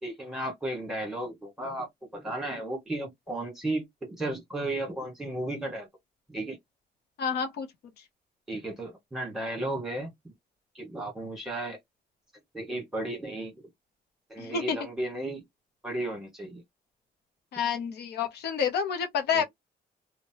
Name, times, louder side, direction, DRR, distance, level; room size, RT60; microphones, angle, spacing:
voice 1, 0.0-5.9 6.3-6.6 8.5-10.1 10.7-11.8 12.5-13.5 14.3-15.4 15.8-16.6 19.3-19.4, right 1 dB, 5° right, 1.5 m, -34 dB
voice 2, 7.2-7.7 14.4-14.8 17.5-19.4, left 7 dB, 75° left, 0.7 m, -29 dB
2.7 x 2.2 x 2.8 m
cardioid pair, 140°, 17 cm